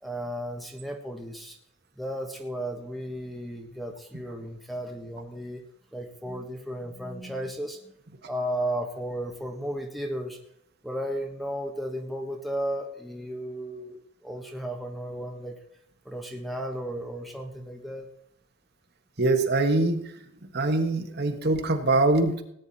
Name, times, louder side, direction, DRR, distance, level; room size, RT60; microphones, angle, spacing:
voice 1, 0.0-1.6 2.0-5.6 5.9-7.9 8.3-10.4 10.8-15.5 16.0-18.1, equal, ahead, 3 dB, 1.4 m, -34 dB
voice 2, 19.2-20.0 20.5-22.4, right 2 dB, 50° right, 5 dB, 1.5 m, -23 dB
18.0 x 9.6 x 4.2 m, 0.73 s
head